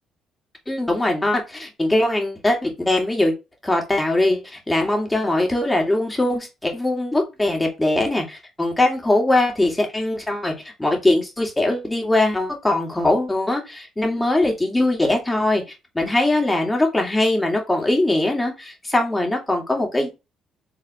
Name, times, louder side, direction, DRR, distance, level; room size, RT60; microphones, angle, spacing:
voice 1, 0.7-3.3 3.6-15.6 15.9-20.1, left 1 dB, 15° left, 2.1 m, -21 dB
5.1 x 3.5 x 2.9 m
supercardioid pair, 70°, 0 cm